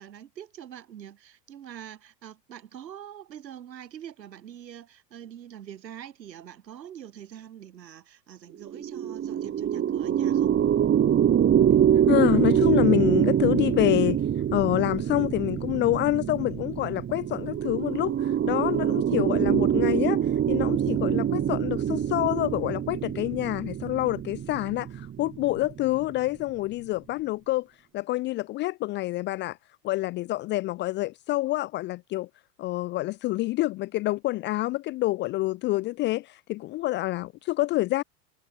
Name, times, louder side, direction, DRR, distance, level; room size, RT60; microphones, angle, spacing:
voice 1, 0.0-10.6 19.2-19.5, right 10 dB, 80° right, 5.6 m, -44 dB
sound 1, 8.6-26.1, right 9 dB, 25° right, 1.7 m, -25 dB
voice 2, 12.1-14.2 14.5-20.2 20.5-27.7 27.9-29.6 29.8-32.3 32.6-38.0, left 18 dB, 25° left, 0.4 m, -27 dB
hypercardioid pair, 95°, 50 cm